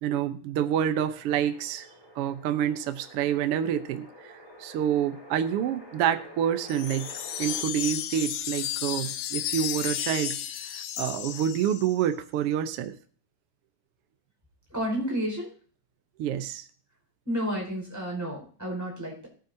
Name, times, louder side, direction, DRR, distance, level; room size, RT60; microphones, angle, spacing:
voice 1, 0.0-1.9 2.2-4.1 4.6-10.4 10.7-12.9 16.2-16.6, right 9 dB, 70° right, 8 dB, 1.4 m, -28 dB
sound 1, 1.0-7.6, equal, 25° left, 0.4 m, -49 dB
sound 2, 6.7-12.1, left 11 dB, 75° left, 1.9 m, -33 dB
voice 2, 14.7-15.5 17.2-19.3, equal, 5° right, -2 dB, 4.8 m, -31 dB
18.0 x 9.4 x 2.8 m, 0.44 s
omnidirectional pair, 3.7 m